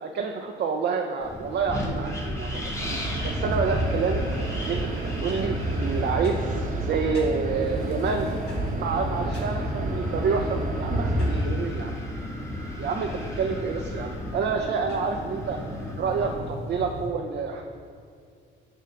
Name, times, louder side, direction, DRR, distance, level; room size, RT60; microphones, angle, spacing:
voice 1, 0.0-2.7 3.2-4.2 4.6-6.4 6.8-8.3 8.7-11.9 12.8-15.6 16.0-17.6, right 5 dB, 55° right, 3 dB, 0.5 m, -28 dB
Wind, 1.2-16.4, equal, 15° left, 1.2 m, -36 dB
sound 1, 2.7-17.1, left 1 dB, 55° left, 1.7 m, -39 dB
sound 2, 2.8-11.5, right 1 dB, 40° right, 0.9 m, -29 dB
8.6 x 3.7 x 5.6 m, 2.2 s
cardioid pair, 90°, 20 cm